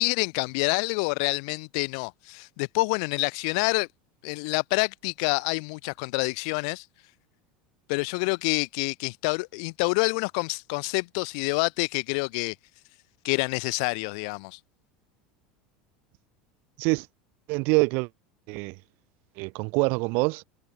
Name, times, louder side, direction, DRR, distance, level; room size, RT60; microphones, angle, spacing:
voice 1, 0.0-3.9 4.2-6.8 7.9-12.5 13.2-14.6, left 33 dB, 70° left, 1.4 m, -27 dB
voice 2, 17.5-18.1 18.5-18.8 19.4-20.4, right 29 dB, 65° right, 1.9 m, -25 dB
hypercardioid pair, 95°, 4 cm